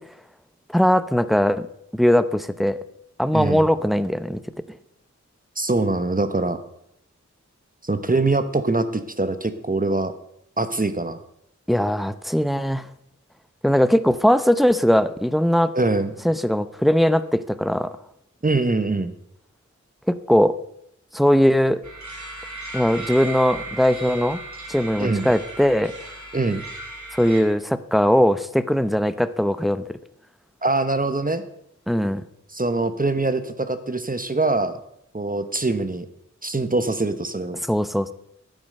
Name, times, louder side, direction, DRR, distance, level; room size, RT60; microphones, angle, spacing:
voice 1, 0.7-1.6 1.9-2.8 3.2-4.4 11.7-12.8 13.6-15.7 16.2-17.9 20.1-20.5 21.1-21.8 22.7-24.4 24.7-25.9 27.1-29.8 31.9-32.2 37.7-38.1, equal, ahead, 13 dB, 0.7 m, -20 dB
voice 2, 3.3-3.7 5.6-6.6 7.8-10.1 10.6-11.2 15.7-16.1 18.4-19.1 25.0-25.3 26.3-26.6 30.6-31.4 32.5-34.8 35.1-36.1 36.4-37.6, right 2 dB, 30° right, 10 dB, 1.0 m, -23 dB
sound 1, 21.8-27.4, right 2 dB, 70° right, 2.8 m, -36 dB
11.0 x 8.9 x 6.5 m, 0.76 s
wide cardioid pair, 55°, 30 cm